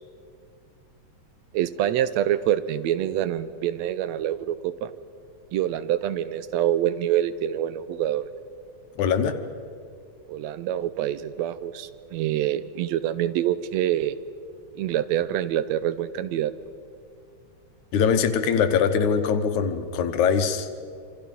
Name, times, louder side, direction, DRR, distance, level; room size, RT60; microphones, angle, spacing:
voice 1, 1.5-4.9 5.5-8.3 10.3-14.2 14.8-16.5, right 11 dB, 75° right, 14 dB, 1.9 m, -26 dB
voice 2, 9.0-9.4 17.9-20.7, left 6 dB, 85° left, 8 dB, 2.6 m, -22 dB
26.5 x 26.0 x 5.5 m, 2.3 s
omnidirectional pair, 3.3 m